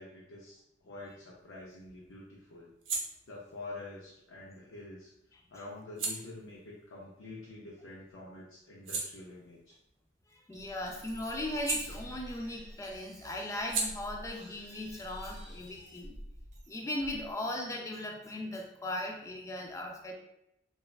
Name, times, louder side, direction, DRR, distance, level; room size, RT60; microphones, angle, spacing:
voice 1, 0.0-2.7 3.3-5.1 5.5-9.8, left 2 dB, 75° left, -4 dB, 0.5 m, -47 dB
sound 1, 1.1-8.0 8.4-12.6 12.8-16.3, right 4 dB, 80° right, 0.6 m, -42 dB
voice 2, 10.3-16.2 16.7-20.1, left 1 dB, 15° left, 1 dB, 0.3 m, -38 dB
sound 2, 10.5-17.3, equal, 40° right, 0.5 m, -49 dB
3.1 x 2.2 x 2.3 m, 0.82 s
head